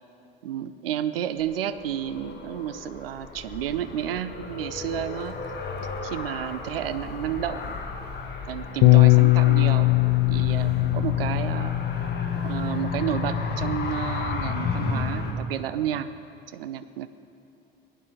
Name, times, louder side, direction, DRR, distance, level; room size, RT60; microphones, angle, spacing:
voice 1, 0.4-5.4 6.0-7.8 8.5-9.9 10.3-11.7 12.4-16.1 16.5-17.1, right 10 dB, 75° right, 13 dB, 0.7 m, -31 dB
Car, 1.4-15.3, left 3 dB, 35° left, 1.9 m, -33 dB
Bass guitar, 8.8-15.1, left 24 dB, 50° left, 0.5 m, -22 dB
18.0 x 11.0 x 5.2 m, 2.8 s
figure-of-eight pair, 65°, 29 cm